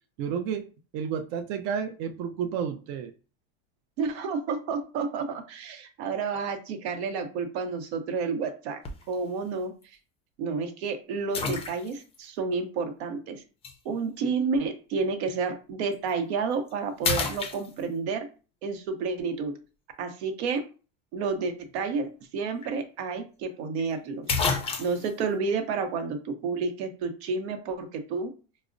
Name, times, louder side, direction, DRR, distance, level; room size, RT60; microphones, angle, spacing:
voice 1, 0.2-0.7 0.9-3.1, right 7 dB, 50° right, 0.5 m, -31 dB
voice 2, 4.0-8.8 9.1-9.7 10.4-13.4 13.8-18.3 18.6-19.5 20.0-20.6 21.1-24.4 24.8-28.3, right 4 dB, 80° right, 0.8 m, -30 dB
sound 1, 8.8-9.2 9.8-9.9 11.3-12.2 13.6-13.8 15.9-16.1 16.5-16.7 17.0-18.1 22.2-22.3 22.6-22.7 23.8-23.9 24.3-25.1, left 4 dB, 20° left, 0.4 m, -29 dB
4.6 x 2.1 x 2.5 m
supercardioid pair, 135°, 32 cm